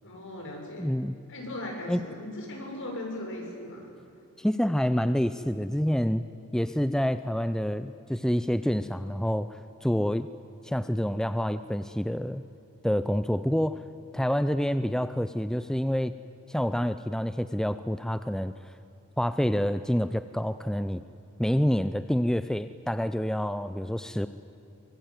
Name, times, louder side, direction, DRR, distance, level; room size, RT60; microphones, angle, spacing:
voice 1, 0.0-1.0 1.3-4.0, left 1 dB, 60° left, 1 dB, 6.9 m, -38 dB
voice 2, 0.8-1.1 1.9-2.0 4.4-6.2 6.5-10.3 10.6-12.4 12.8-13.8 14.1-16.1 16.5-18.5 19.2-21.0 21.4-24.3, equal, 5° left, 11 dB, 0.5 m, -27 dB
24.5 x 23.0 x 9.4 m, 2.7 s
head